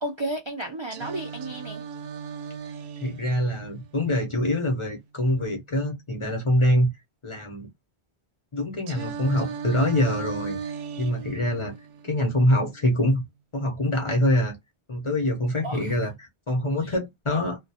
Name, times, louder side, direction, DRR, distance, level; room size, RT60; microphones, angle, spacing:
voice 1, 0.0-1.8 15.6-15.9 16.8-16.9, right 1 dB, 50° right, 0.3 m, -33 dB
Singing, 0.9-4.9 8.9-12.9, right 6 dB, 80° right, 0.8 m, -37 dB
voice 2, 3.0-6.9 7.2-7.7 8.5-10.6 11.0-11.7 12.0-13.2 13.5-14.6 14.9-17.6, left 1 dB, 35° left, 0.6 m, -24 dB
2.2 x 2.2 x 2.7 m
omnidirectional pair, 1.1 m